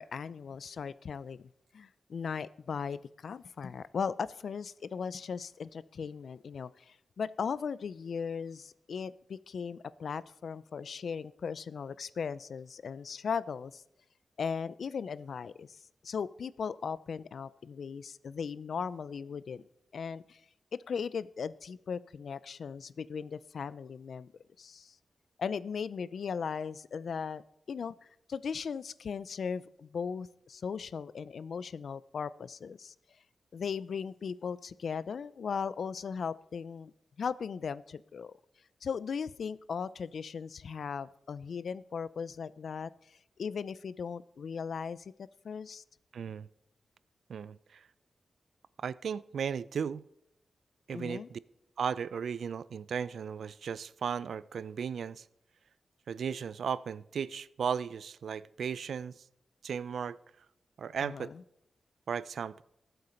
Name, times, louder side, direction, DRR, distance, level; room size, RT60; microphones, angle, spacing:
voice 1, 0.0-13.8 14.4-15.8 16.0-19.6 19.9-20.4 20.9-24.3 24.6-25.0 25.4-27.9 28.3-32.9 33.5-36.9 37.2-38.3 38.8-45.1 45.4-45.8 50.9-51.3 61.0-61.4, left 6 dB, 65° left, 0.4 m, -38 dB
voice 2, 46.1-46.5 47.3-47.9 48.8-50.0 50.9-51.4 51.8-55.3 56.1-59.2 59.6-60.2 60.8-61.3 62.1-62.6, right 7 dB, 75° right, 0.4 m, -36 dB
19.0 x 7.9 x 4.3 m
wide cardioid pair, 170°, 0 cm